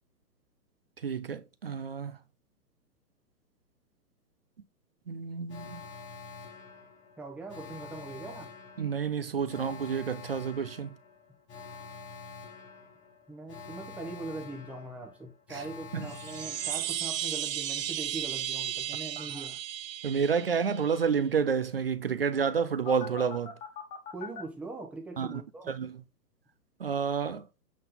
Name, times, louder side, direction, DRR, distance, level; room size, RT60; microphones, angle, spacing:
voice 1, 1.0-2.2 5.1-5.8 8.8-11.0 15.5-15.7 15.9-16.1 19.2-19.4 20.0-23.5 25.2-25.4 25.7-26.0 26.8-27.5, right 6 dB, 40° right, 0.4 m, -30 dB
Alarm, 5.5-17.4 22.9-24.4, left 5 dB, 15° left, 1.3 m, -46 dB
voice 2, 7.2-8.5 13.3-19.6 24.1-25.7, right 3 dB, 5° right, 0.8 m, -41 dB
sound 1, 16.0-21.1, right 11 dB, 85° right, 0.6 m, -35 dB
8.0 x 3.9 x 4.2 m
hypercardioid pair, 140°, 49 cm